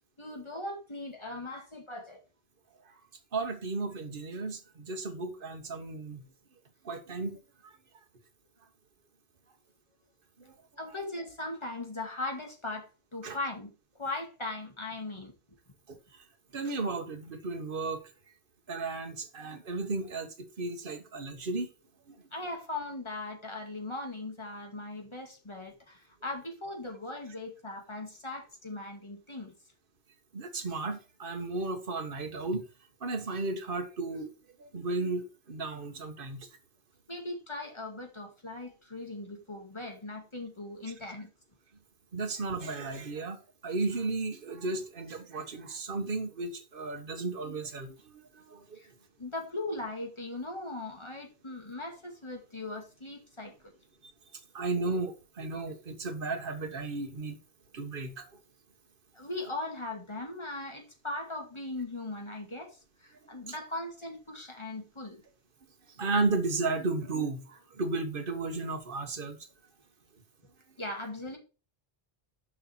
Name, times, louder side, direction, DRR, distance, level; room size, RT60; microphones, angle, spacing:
voice 1, 0.2-2.2 10.8-13.7 14.0-15.3 22.3-29.5 37.1-41.3 48.7-48.9 49.2-53.7 59.1-65.2 70.8-71.4, left 2 dB, 30° left, 2.2 m, -39 dB
voice 2, 3.3-6.2 6.8-7.4 7.6-7.7 10.4-10.5 13.2-13.4 15.9-16.3 16.5-18.0 18.7-21.7 22.1-22.2 30.3-32.6 33.0-34.3 34.6-36.5 42.1-43.4 43.6-48.8 54.5-57.4 57.7-58.3 65.9-69.4, right 3 dB, 60° right, 1.4 m, -34 dB
6.7 x 5.6 x 4.4 m
omnidirectional pair, 1.0 m